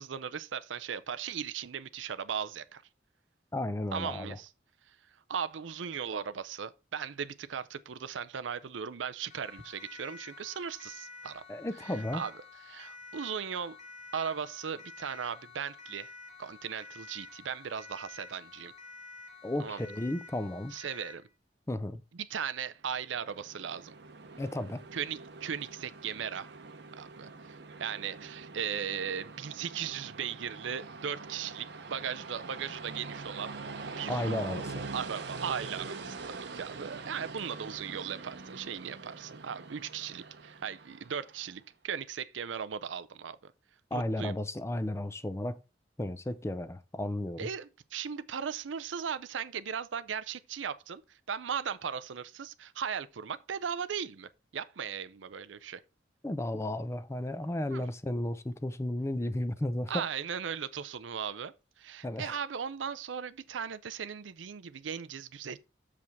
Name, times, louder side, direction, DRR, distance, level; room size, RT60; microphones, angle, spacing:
voice 1, 0.0-2.8 3.9-4.5 4.9-5.0 5.3-11.4 12.1-12.3 12.7-13.8 14.1-16.1 16.4-18.7 19.6-19.8 20.7-21.2 22.1-23.9 24.9-26.5 27.0-33.5 34.0-34.2 34.9-43.5 43.9-44.4 47.4-55.8 57.7-57.8 59.9-65.6, right 7 dB, 90° right, 0.5 m, -37 dB
voice 2, 3.5-4.4 11.5-12.2 19.4-20.7 21.7-22.0 24.4-24.8 34.1-34.8 43.9-45.6 46.0-47.5 56.2-60.0 62.0-62.4, left 1 dB, 15° left, 0.5 m, -33 dB
Siren, 9.3-21.3, left 3 dB, 40° left, 1.1 m, -50 dB
Train, 22.9-41.5, right 3 dB, 65° right, 0.8 m, -44 dB
7.1 x 4.9 x 4.6 m
head